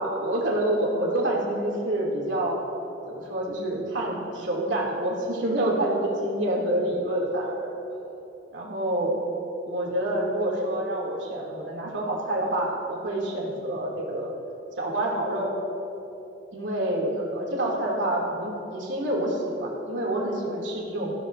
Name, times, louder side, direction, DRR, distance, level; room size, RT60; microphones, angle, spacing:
voice 1, 0.0-2.6 3.1-7.7 8.5-9.2 9.6-14.3 14.8-15.5 16.5-21.1, right 1 dB, 75° right, -3 dB, 2.6 m, -27 dB
20.0 x 14.5 x 2.6 m, 3.0 s
head